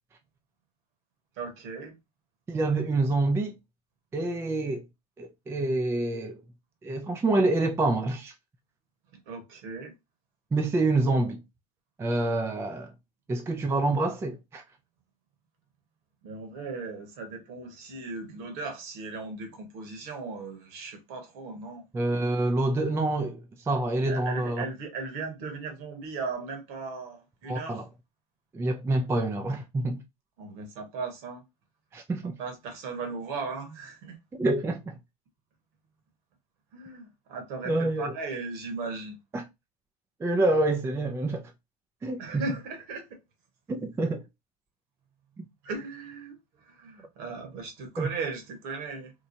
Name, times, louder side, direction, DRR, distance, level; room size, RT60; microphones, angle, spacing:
voice 1, 1.4-2.0 9.1-9.9 16.2-21.8 24.0-27.8 30.4-31.4 32.2-34.2 36.7-39.2 42.2-43.2 45.6-49.1, right 4 dB, 60° right, 1.2 m, -37 dB
voice 2, 2.5-3.6 4.1-4.8 5.2-6.4 6.8-8.3 10.5-11.4 12.0-12.9 13.3-14.6 21.9-23.4 23.7-24.6 27.5-27.8 28.5-30.0 31.9-32.4 34.3-34.9 37.7-38.1 39.3-39.4 40.2-41.5 42.0-42.4 43.7-44.2 45.4-45.5 48.0-48.1, right 2 dB, 15° right, 0.4 m, -27 dB
2.9 x 2.3 x 2.7 m
hypercardioid pair, 95°, 20 cm